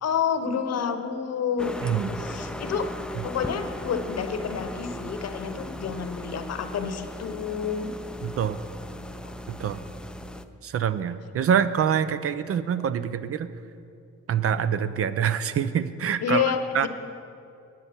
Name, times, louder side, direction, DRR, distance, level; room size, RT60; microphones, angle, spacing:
voice 1, 0.0-1.8 2.2-2.9 3.2-7.9 9.2-9.3 16.2-16.9, left 7 dB, 60° left, 9 dB, 0.9 m, -29 dB
sound 1, 1.6-10.4, left 1 dB, 5° left, 0.4 m, -37 dB
voice 2, 1.8-2.2 8.2-8.6 9.5-9.8 10.6-13.5 14.3-16.4 16.7-16.9, right 8 dB, 50° right, 13 dB, 0.5 m, -25 dB
9.6 x 9.2 x 5.6 m, 2.5 s
cardioid pair, 90°, 30 cm